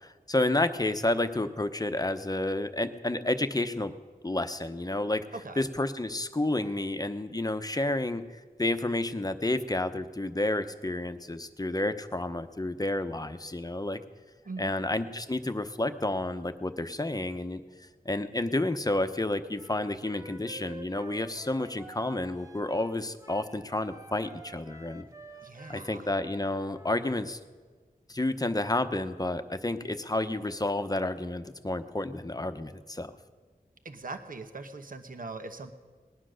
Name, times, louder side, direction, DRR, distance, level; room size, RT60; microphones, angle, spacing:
voice 1, 0.0-3.9 4.2-5.2 5.6-8.2 8.6-14.0 14.6-17.6 18.0-25.1 25.7-27.4 28.1-33.1, left 2 dB, 25° left, 10 dB, 0.8 m, -30 dB
voice 2, 5.3-5.7 14.4-14.7 25.4-26.1 33.8-35.7, right 3 dB, 65° right, 7 dB, 1.0 m, -41 dB
Wind instrument woodwind instrument, 19.6-27.1, right 2 dB, 20° right, 1.1 m, -50 dB
19.5 x 10.0 x 6.4 m, 1.4 s
wide cardioid pair, 60°, 15 cm